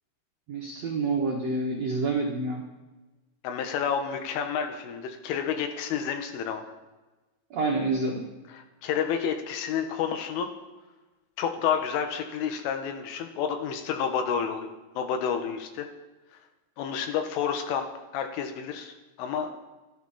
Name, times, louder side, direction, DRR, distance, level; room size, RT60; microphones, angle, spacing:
voice 1, 0.5-2.6 7.5-8.2, right 3 dB, 70° right, -1 dB, 1.6 m, -28 dB
voice 2, 3.4-6.6 8.5-10.5 11.4-14.7 15.0-15.9 16.8-17.9 18.1-19.5, left 7 dB, 80° left, 6 dB, 3.8 m, -30 dB
28.5 x 11.5 x 4.3 m, 1.1 s
omnidirectional pair, 5.7 m